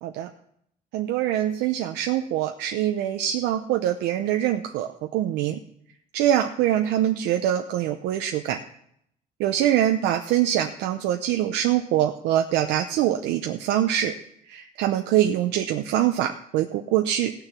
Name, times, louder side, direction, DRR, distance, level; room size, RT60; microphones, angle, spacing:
voice 1, 0.9-5.6 6.1-8.6 9.4-14.1 14.5-17.3, right 11 dB, 90° right, 5 dB, 0.7 m, -24 dB
16.5 x 6.8 x 6.1 m, 0.71 s
cardioid pair, 110°, 17 cm